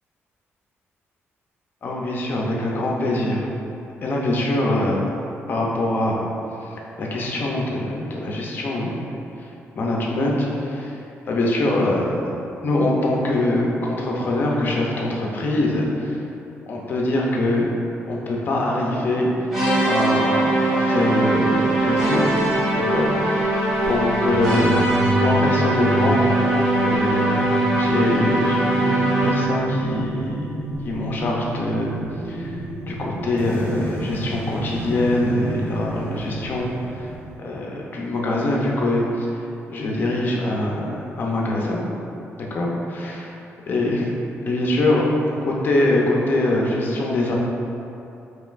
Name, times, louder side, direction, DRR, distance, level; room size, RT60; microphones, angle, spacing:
voice 1, 1.8-3.4 4.0-5.0 5.5-6.2 6.7-9.1 9.7-11.0 11.3-12.3 12.6-16.2 16.7-17.7 18.1-19.3 19.8-22.2 22.8-23.5 23.9-24.9 25.2-26.6 26.8-27.4 27.8-29.0 29.2-30.5 30.8-32.0 32.3-32.6 32.9-37.1 37.4-39.3 39.7-41.8 42.5-43.2 43.7-44.1 44.5-45.0 45.5-47.3, left 1 dB, 45° left, -2 dB, 0.6 m, -23 dB
sound 1, 19.5-29.6, right 2 dB, 10° right, 1.2 m, -21 dB
sound 2, 21.0-37.4, equal, 50° right, 1.0 m, -31 dB
5.2 x 3.0 x 2.4 m, 2.8 s
cardioid pair, 165°, 5 cm